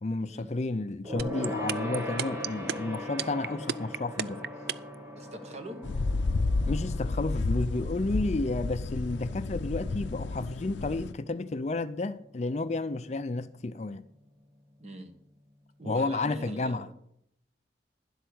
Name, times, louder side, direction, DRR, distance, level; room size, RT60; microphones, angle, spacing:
voice 1, 0.0-4.4 6.7-14.0 15.8-16.9, left 2 dB, 35° left, 0.4 m, -31 dB
Gong, 1.0-10.8 11.1-11.4 11.7-11.8, equal, 20° right, 3.4 m, -40 dB
sound 1, 1.2-5.0, right 8 dB, 60° right, 0.4 m, -31 dB
voice 2, 5.1-5.8 14.8-15.1 15.8-16.9, equal, 35° right, 1.5 m, -42 dB
sound 2, 5.8-11.1, left 3 dB, 90° left, 0.5 m, -31 dB
11.0 x 8.0 x 6.2 m
head